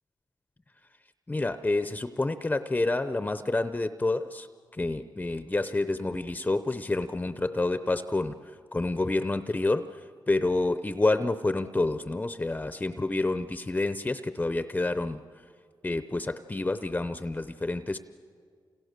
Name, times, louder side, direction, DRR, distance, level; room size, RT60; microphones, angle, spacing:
voice 1, 1.3-4.5 4.7-8.4 8.7-15.2 15.8-18.0, left 2 dB, 20° left, 11 dB, 0.7 m, -28 dB
29.5 x 28.0 x 6.7 m, 2.1 s
cardioid pair, 95°, 8 cm